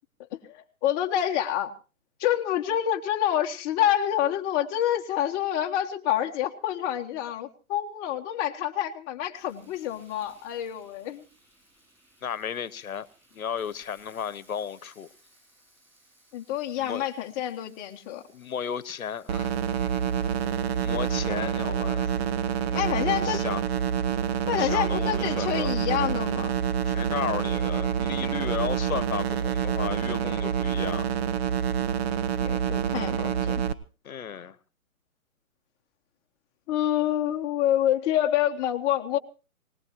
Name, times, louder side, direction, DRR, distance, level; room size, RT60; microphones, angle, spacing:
voice 1, 0.3-1.7 2.2-11.2 16.3-18.2 22.7-23.4 24.5-26.5 32.4-33.6 36.7-39.2, left 11 dB, 20° left, 1.2 m, -27 dB
Frying (food), 9.3-21.3, right 1 dB, 5° right, 7.8 m, -61 dB
voice 2, 12.2-13.1 13.3-15.1 16.8-17.0 18.3-19.5 20.8-22.2 23.2-23.6 24.5-25.7 26.9-31.1 34.0-34.6, left 7 dB, 80° left, 1.1 m, -34 dB
sound 1, 19.3-33.7, right 8 dB, 45° right, 1.0 m, -27 dB
20.5 x 19.5 x 3.0 m
hypercardioid pair, 145°, 42 cm